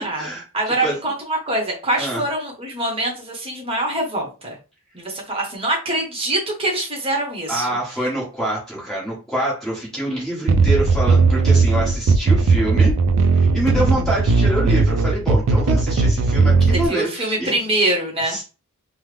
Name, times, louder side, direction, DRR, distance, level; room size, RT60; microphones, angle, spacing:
voice 1, 0.5-4.5 4.9-7.8 16.7-18.4, right 1 dB, 25° right, 0 dB, 0.9 m, -24 dB
voice 2, 7.5-13.0 13.3-17.6 18.2-18.4, right 1 dB, ahead, -6 dB, 1.3 m, -26 dB
sound 1, 10.5-16.9, right 4 dB, 60° right, 0.3 m, -17 dB
3.3 x 2.0 x 3.3 m, 0.33 s
head